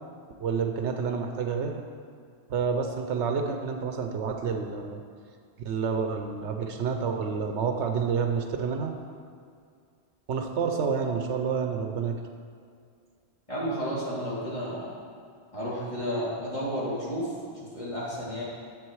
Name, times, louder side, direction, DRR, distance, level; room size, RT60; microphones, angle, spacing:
voice 1, 0.4-1.8 2.5-5.0 5.6-8.9 10.3-12.2, right 6 dB, 80° right, 4 dB, 1.0 m, -29 dB
voice 2, 13.5-15.0 15.5-18.4, equal, 30° left, -9 dB, 3.0 m, -32 dB
11.0 x 7.7 x 4.7 m, 2.2 s
omnidirectional pair, 1.2 m